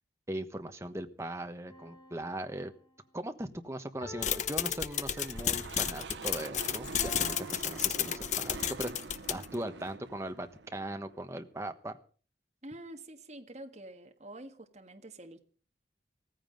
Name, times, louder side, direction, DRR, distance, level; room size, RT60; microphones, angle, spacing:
voice 1, 0.3-2.7 3.1-8.9 9.3-12.0, right 1 dB, 15° right, 7 dB, 1.2 m, -39 dB
sound 1, 1.7-3.0 4.0-5.7 7.0-8.7 9.4-9.5, left 4 dB, 25° left, 3.6 m, -49 dB
sound 2, 4.2-9.6, left 9 dB, 40° left, 0.7 m, -32 dB
sound 3, 4.9-11.3, right 4 dB, 80° right, 0.7 m, -46 dB
voice 2, 12.6-15.4, right 1 dB, 40° right, 4 dB, 1.5 m, -47 dB
15.5 x 15.0 x 5.2 m, 0.41 s
head